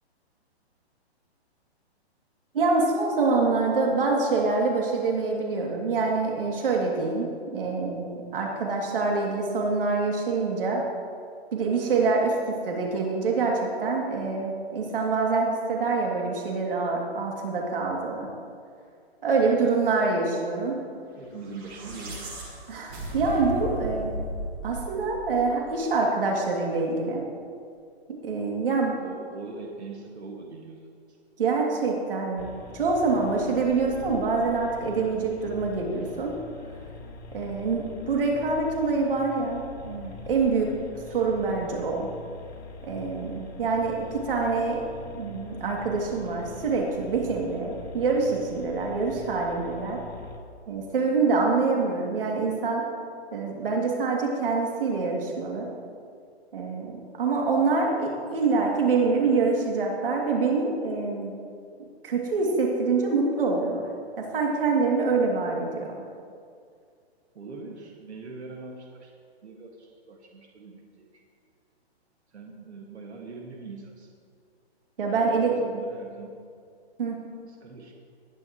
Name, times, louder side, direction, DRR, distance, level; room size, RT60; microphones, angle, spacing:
voice 1, 2.5-10.8 11.5-18.3 19.2-20.8 22.7-24.1 24.6-27.2 28.1-28.9 31.4-32.5 32.7-36.3 37.3-40.7 41.1-42.1 42.8-44.8 45.1-50.0 50.7-52.8 53.3-55.7 56.5-61.3 62.0-63.8 64.2-66.1 75.0-75.6 77.0-77.2, right 4 dB, 55° right, -1 dB, 2.6 m, -25 dB
voice 2, 21.2-22.3 29.0-30.9 67.4-69.1 69.4-71.1 72.3-74.1 75.1-76.4 77.6-77.9, right 4 dB, 90° right, 0 dB, 2.0 m, -41 dB
sound 1, 21.4-25.8, right 1 dB, 20° right, 1.5 m, -35 dB
sound 2, 32.4-50.4, left 3 dB, 75° left, 2.5 m, -43 dB
20.5 x 9.9 x 3.1 m, 2.2 s
hypercardioid pair, 175°, 32 cm